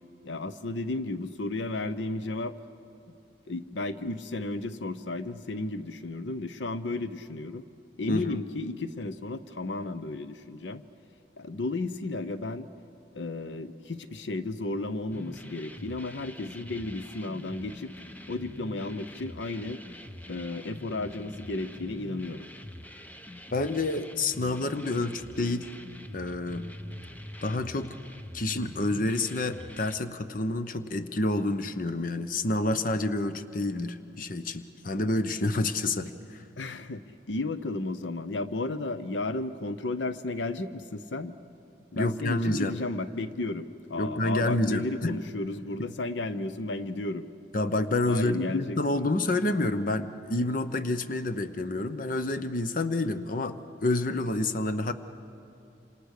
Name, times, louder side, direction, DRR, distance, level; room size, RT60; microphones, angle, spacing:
voice 1, 0.2-2.5 3.5-7.6 8.0-10.8 11.4-12.7 13.1-17.9 18.3-19.8 20.3-22.4 36.6-41.3 41.9-47.3 48.1-49.0, left 2 dB, 85° left, 12 dB, 0.8 m, -33 dB
sound 1, 15.1-30.0, left 1 dB, 10° left, 0.7 m, -44 dB
voice 2, 23.5-25.7 26.1-26.7 27.4-27.9 28.3-36.8 41.9-42.7 44.0-45.2 47.5-54.9, left 2 dB, 50° left, 10 dB, 0.9 m, -28 dB
27.5 x 27.0 x 6.6 m, 2.8 s
head